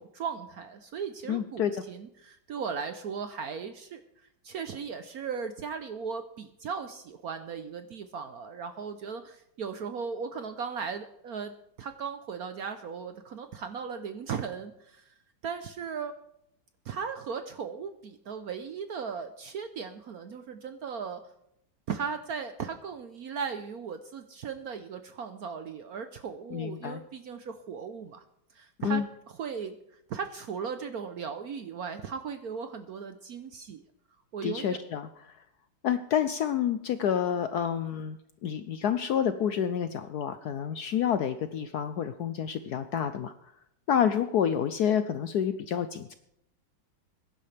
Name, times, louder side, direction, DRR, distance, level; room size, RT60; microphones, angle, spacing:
voice 1, 0.0-4.0 4.4-15.0 15.4-16.1 16.8-21.2 21.9-28.2 28.5-29.8 30.1-33.8 34.3-34.8, right 6 dB, 65° right, 8 dB, 1.0 m, -37 dB
voice 2, 1.3-1.7 26.5-27.0 28.8-29.1 34.4-35.3 35.8-43.3 43.9-46.1, left 8 dB, 70° left, 10 dB, 1.0 m, -29 dB
21.0 x 11.0 x 3.4 m, 0.76 s
omnidirectional pair, 2.2 m